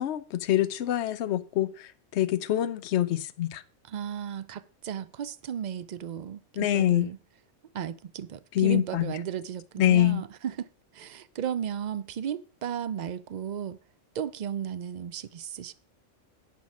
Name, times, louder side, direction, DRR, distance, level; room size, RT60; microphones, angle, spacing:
voice 1, 0.0-3.6 6.6-7.1 8.5-9.1 9.8-10.2, left 12 dB, 65° left, 0.9 m, -25 dB
voice 2, 3.8-7.2 7.7-13.8 14.1-15.7, right 9 dB, 60° right, 0.4 m, -35 dB
10.5 x 5.8 x 5.9 m
omnidirectional pair, 1.3 m